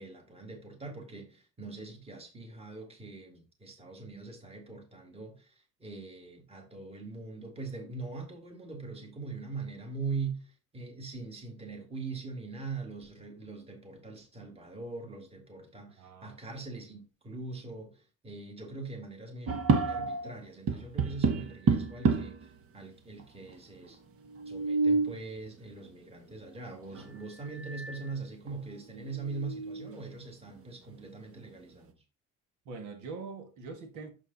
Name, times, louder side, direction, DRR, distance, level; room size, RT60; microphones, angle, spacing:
voice 1, 0.0-19.5 19.9-24.0 24.5-31.9, right 4 dB, 20° right, 2.1 m, -42 dB
voice 2, 16.0-16.4 32.7-34.1, right 4 dB, 80° right, 1.8 m, -43 dB
sound 1, 19.5-20.3 20.7-22.5 23.2-23.3 23.5-23.6 24.3-25.2 26.9-27.1 27.6-28.0 28.5-28.6 29.1-30.0, right 4 dB, 50° right, 1.1 m, -29 dB
6.7 x 5.1 x 4.0 m
cardioid pair, 110°, 29 cm